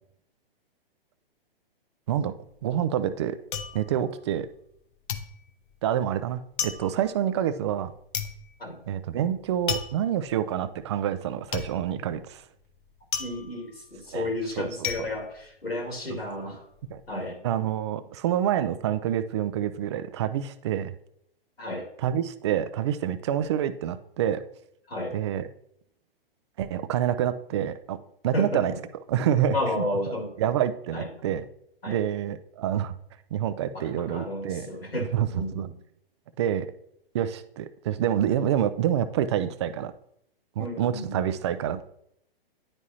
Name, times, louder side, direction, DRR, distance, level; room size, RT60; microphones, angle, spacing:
sound 1, 2.4-4.8 5.1-16.2 16.5-17.1, left 7 dB, 55° left, 0.8 m, -35 dB
voice 1, 2.6-3.4 3.7-4.5 5.8-7.9 8.9-12.4 14.1-14.3 14.6-14.9 16.9-17.0 17.4-20.9 22.0-24.4 25.1-25.5 26.6-28.0 28.2-28.7 29.1-29.9 30.4-31.5 31.9-32.9 33.3-34.7 35.1-35.7 36.4-36.7 37.1-39.9 40.6-41.9, right 10 dB, 30° right, 12 dB, 0.4 m, -27 dB
voice 2, 13.2-16.6 17.1-17.5 21.6-21.9 24.9-25.1 28.3-28.8 29.5-30.3 30.9-31.1 31.8-32.0 33.7-35.7 40.6-41.3, left 1 dB, 90° left, 1 dB, 2.3 m, -32 dB
9.8 x 4.7 x 2.8 m, 0.72 s
figure-of-eight pair, 120°, 29 cm